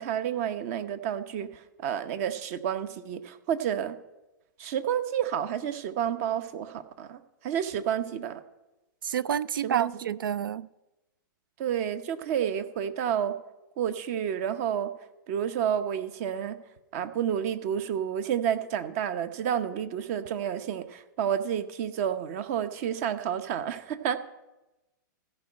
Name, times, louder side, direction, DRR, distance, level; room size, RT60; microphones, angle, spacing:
voice 1, 0.0-1.5 1.8-4.0 4.6-8.4 9.6-9.9 11.6-13.3 13.8-14.9 15.3-16.6 16.9-24.2, right 9 dB, 45° right, 0.8 m, -30 dB
voice 2, 9.0-10.7, right 9 dB, 90° right, 0.4 m, -29 dB
15.0 x 5.4 x 8.7 m
hypercardioid pair, 130°, 11 cm